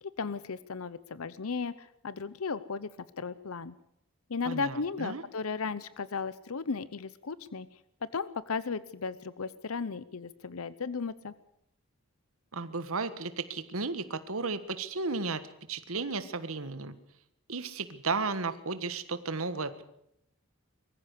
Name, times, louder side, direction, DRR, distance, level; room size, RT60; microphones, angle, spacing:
voice 1, 0.0-2.9 3.2-3.7 4.3-7.7 8.0-11.3, left 4 dB, 80° left, 17 dB, 0.7 m, -35 dB
voice 2, 4.4-5.2 12.5-15.4 15.7-16.9 17.5-19.8, right 4 dB, 75° right, 12 dB, 1.5 m, -34 dB
23.0 x 15.0 x 8.2 m, 0.75 s
head